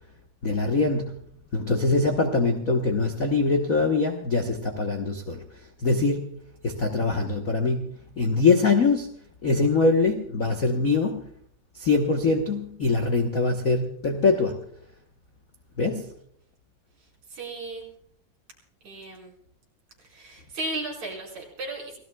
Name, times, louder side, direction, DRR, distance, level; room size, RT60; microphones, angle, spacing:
voice 1, 0.4-1.2 1.5-5.4 5.8-6.3 6.6-9.1 9.4-11.2 11.7-14.6 15.8-16.1, left 3 dB, 85° left, 3 dB, 0.7 m, -23 dB
voice 2, 17.3-17.9 18.8-19.3 20.0-22.0, right 2 dB, 70° right, -1 dB, 6.1 m, -35 dB
29.5 x 17.0 x 2.3 m, 0.63 s
omnidirectional pair, 3.4 m